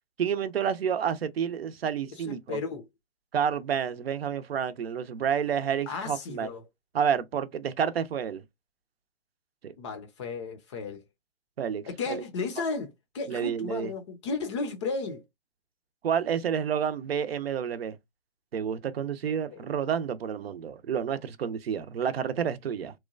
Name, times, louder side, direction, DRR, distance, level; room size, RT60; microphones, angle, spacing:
voice 1, 0.2-2.6 3.3-6.5 6.9-8.4 9.6-9.7 11.6-11.8 12.1-12.2 13.3-13.9 16.0-18.0 18.5-22.9, right 8 dB, 60° right, 0.6 m, -29 dB
voice 2, 2.2-2.9 5.9-6.6 9.8-11.0 11.9-15.2 19.3-19.6, left 4 dB, 25° left, 0.5 m, -34 dB
2.9 x 2.2 x 2.3 m
hypercardioid pair, 135°, 34 cm